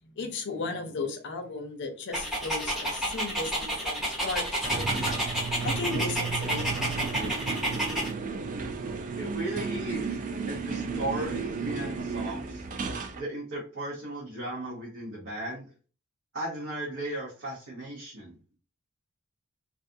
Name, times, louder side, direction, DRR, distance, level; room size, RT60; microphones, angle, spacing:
voice 1, 0.2-5.1 5.6-7.3, left 3 dB, 55° left, 0.6 m, -35 dB
Dog, 2.1-8.1, right 1 dB, ahead, 0.7 m, -30 dB
sound 1, 4.6-13.2, right 4 dB, 35° right, 0.3 m, -33 dB
voice 2, 9.2-10.2 10.5-12.7 13.2-15.7 16.3-18.4, right 1 dB, 60° right, 0.9 m, -36 dB
2.4 x 2.3 x 2.6 m
head